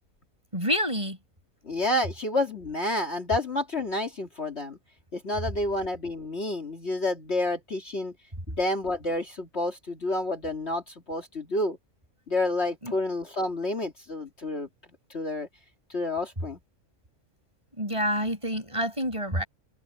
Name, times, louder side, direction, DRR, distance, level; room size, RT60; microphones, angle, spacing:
voice 1, 0.5-1.2 12.8-12.9 17.8-19.5, equal, 20° right, 8.2 m, -28 dB
voice 2, 1.6-4.8 5.1-8.1 8.5-11.8 12.3-14.7 15.1-15.5 15.9-16.6, left 1 dB, 45° left, 2.6 m, -29 dB
omnidirectional pair, 1.5 m